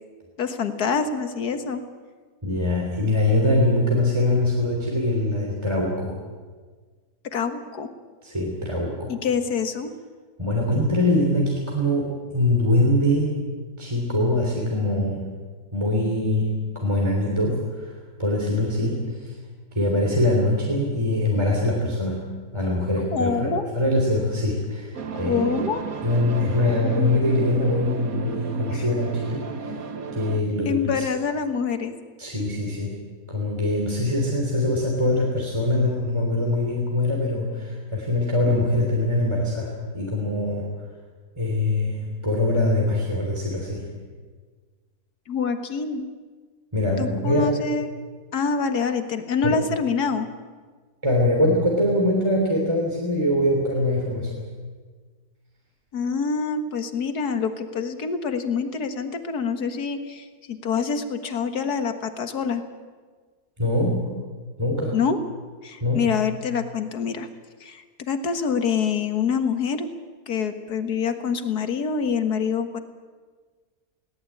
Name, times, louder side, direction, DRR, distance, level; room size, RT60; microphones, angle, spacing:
voice 1, 0.4-1.8 7.3-7.9 9.1-9.9 23.1-23.7 25.1-25.9 28.7-28.8 30.6-31.9 45.3-46.1 47.0-48.0 48.3-50.3 55.9-62.6 64.9-65.2 65.6-67.3 67.6-69.9 70.3-72.8, left 6 dB, 75° left, 8 dB, 2.0 m, -26 dB
voice 2, 2.4-6.2 8.2-9.1 10.4-13.4 13.8-15.2 15.7-17.9 18.2-19.4 19.7-22.2 22.5-25.5 26.0-29.8 30.1-31.0 32.2-33.0 33.3-40.7 41.4-43.8 46.7-47.5 49.4-49.6 51.0-54.4 63.6-64.1 64.6-65.0 65.8-66.1, left 1 dB, 15° right, -1 dB, 3.4 m, -23 dB
sound 1, 24.9-30.4, right 5 dB, 65° right, 1.7 m, -32 dB
21.0 x 18.5 x 8.6 m, 1.5 s
omnidirectional pair, 1.7 m